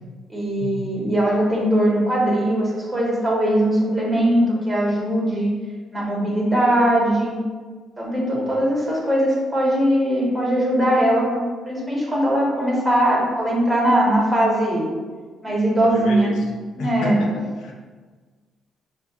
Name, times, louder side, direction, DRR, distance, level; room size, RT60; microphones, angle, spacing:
voice 1, 0.3-5.5 5.9-7.4 8.0-14.9 15.4-16.3 16.8-17.2, right 1 dB, 10° right, -4 dB, 1.1 m, -20 dB
voice 2, 15.9-16.4 16.8-17.7, left 1 dB, 80° left, 1 dB, 0.5 m, -30 dB
4.9 x 2.3 x 2.4 m, 1.4 s
cardioid pair, 90°, 0 cm